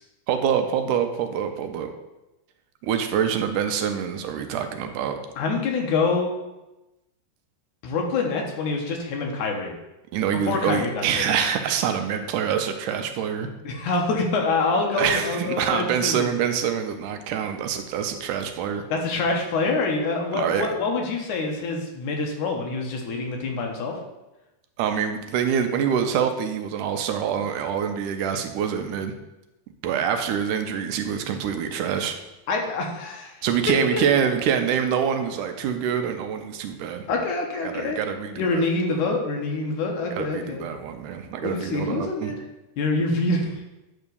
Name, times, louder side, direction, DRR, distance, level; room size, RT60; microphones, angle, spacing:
voice 1, 0.3-1.9 2.8-5.2 10.1-13.5 14.9-18.8 20.3-20.7 24.8-29.1 29.8-32.2 33.4-37.1 37.6-38.6 40.1-42.3, right 8 dB, 75° right, 6 dB, 2.0 m, -25 dB
voice 2, 5.4-6.3 7.8-9.7 10.5-11.3 13.6-16.3 18.9-24.0 32.5-33.3 33.9-34.0 37.1-38.0 38.4-40.7 41.4-42.4 42.8-43.6, left 3 dB, 65° left, 1 dB, 2.4 m, -26 dB
9.6 x 3.6 x 6.8 m, 0.99 s
omnidirectional pair, 4.0 m